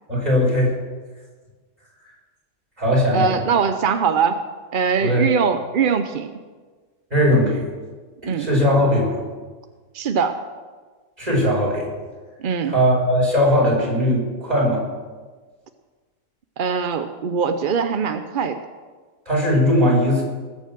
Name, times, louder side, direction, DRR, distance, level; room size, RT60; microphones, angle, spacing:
voice 1, 0.1-0.7 2.8-3.4 5.0-5.3 7.1-7.6 8.2-9.2 11.2-11.9 12.6-14.8 19.3-20.2, equal, 25° right, -3 dB, 5.2 m, -19 dB
voice 2, 3.1-4.4 4.7-6.3 8.3-8.5 9.9-10.4 12.4-12.7 16.6-18.6, right 6 dB, 50° right, 8 dB, 0.6 m, -21 dB
19.5 x 7.1 x 7.6 m, 1.4 s
omnidirectional pair, 1.6 m